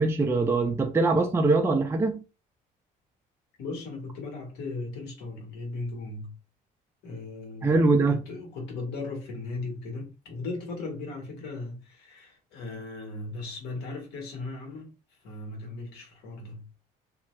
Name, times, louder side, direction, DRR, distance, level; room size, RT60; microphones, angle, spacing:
voice 1, 0.0-2.2 7.6-8.2, right 3 dB, 15° right, 0.4 m, -23 dB
voice 2, 3.6-6.3 7.0-14.9 15.2-16.7, left 3 dB, 85° left, 1.5 m, -37 dB
2.6 x 2.3 x 3.1 m
cardioid pair, 110°, 17 cm